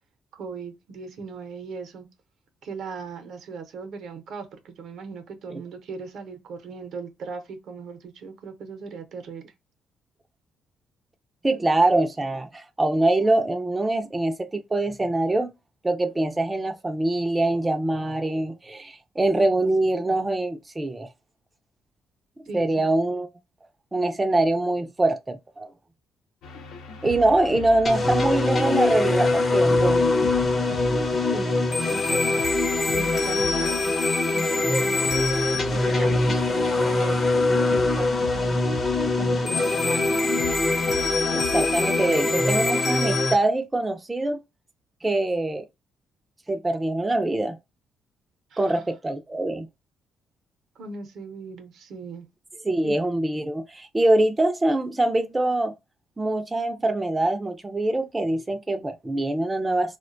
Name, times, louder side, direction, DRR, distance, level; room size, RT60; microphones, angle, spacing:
voice 1, 0.3-2.1 2.6-9.5 22.5-22.9 31.3-31.6 31.9-32.4 32.9-34.0 34.3-35.2 35.7-38.1 38.3-38.6 39.1-40.1 48.5-48.8 50.8-52.3 52.8-52.9, right 4 dB, 70° right, 0.6 m, -38 dB
voice 2, 11.4-15.5 15.8-21.1 22.5-23.3 23.9-25.7 27.0-30.3 41.3-44.4 45.0-45.6 46.5-47.6 48.6-49.7 52.6-55.7 56.2-60.0, right 2 dB, 15° right, 0.3 m, -24 dB
sound 1, 26.4-42.7, left 3 dB, 85° left, 0.5 m, -39 dB
sound 2, 27.8-43.3, left 2 dB, 35° left, 0.5 m, -23 dB
2.4 x 2.1 x 2.5 m
cardioid pair, 90°, 0 cm